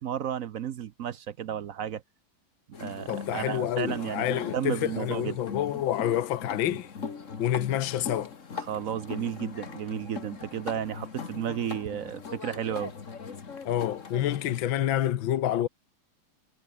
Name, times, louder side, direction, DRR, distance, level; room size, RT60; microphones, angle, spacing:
voice 1, 0.0-2.0 2.8-5.4 8.6-12.9, right 9 dB, 60° right, 0.9 m, -33 dB
sound 1, 2.7-14.6, left 5 dB, 40° left, 2.0 m, -40 dB
voice 2, 3.1-6.9 7.4-8.3 13.7-15.7, left 12 dB, 75° left, 1.7 m, -28 dB
omnidirectional pair, 2.2 m